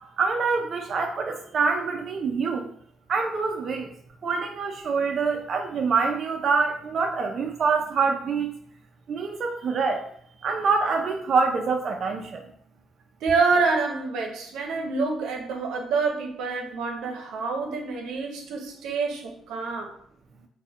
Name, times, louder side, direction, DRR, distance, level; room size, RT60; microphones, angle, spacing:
voice 1, 0.2-2.7 3.1-3.9 4.2-8.6 9.1-10.0 10.4-12.4, right 4 dB, 55° right, 0.4 m, -25 dB
voice 2, 13.2-19.9, right 4 dB, 85° right, 0.8 m, -27 dB
5.8 x 2.2 x 2.9 m
cardioid pair, 90°, 0 cm